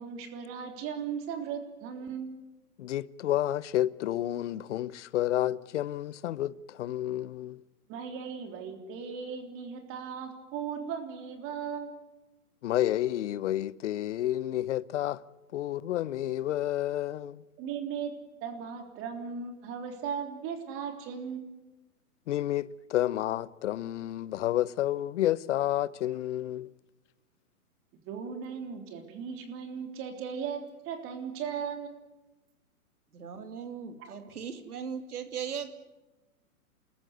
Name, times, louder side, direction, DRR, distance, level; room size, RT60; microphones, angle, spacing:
voice 1, 0.0-2.4 7.9-12.0 17.6-18.1 18.4-21.4 28.0-31.9, right 7 dB, 30° right, 3.5 m, -37 dB
voice 2, 2.8-7.6 12.6-15.2 15.5-17.4 22.3-26.7, left 13 dB, 50° left, 0.9 m, -30 dB
voice 3, 33.1-35.7, right 7 dB, 75° right, 3.0 m, -38 dB
29.5 x 14.0 x 9.5 m
hypercardioid pair, 135°, 45 cm